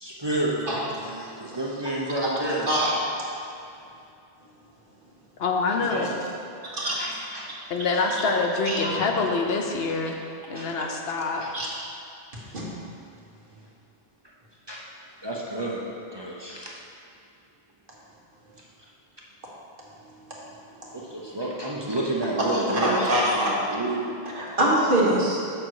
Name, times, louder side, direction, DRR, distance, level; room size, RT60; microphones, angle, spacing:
voice 1, 0.0-2.7 5.8-6.3 6.6-7.5 10.5-10.8 14.7-14.8 15.2-16.8 20.9-24.1, right 1 dB, 30° right, -4 dB, 0.7 m, -30 dB
voice 2, 5.4-6.1 7.7-10.2 10.5-11.5, left 4 dB, 75° left, 2 dB, 1.0 m, -25 dB
voice 3, 22.4-23.6 24.4-25.4, right 1 dB, 55° right, -5 dB, 1.5 m, -23 dB
6.4 x 6.1 x 4.7 m, 2.6 s
omnidirectional pair, 1.0 m